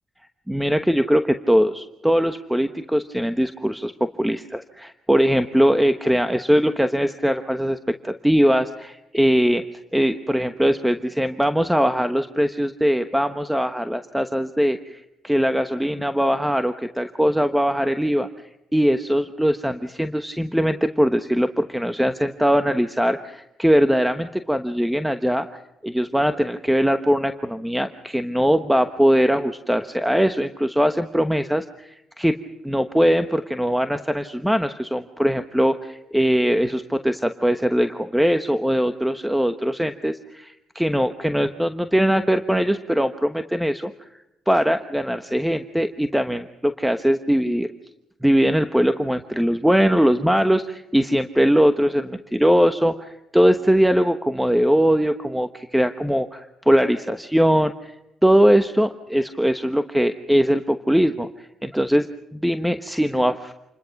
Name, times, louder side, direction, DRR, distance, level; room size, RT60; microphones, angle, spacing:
voice 1, 0.5-7.8 8.0-9.6 9.9-18.3 18.7-32.3 32.6-44.1 44.5-47.7 48.2-57.9 58.2-62.1 62.3-63.5, equal, 5° right, 9 dB, 1.1 m, -21 dB
28.5 x 21.0 x 5.9 m, 0.87 s
cardioid pair, 90°, 0 cm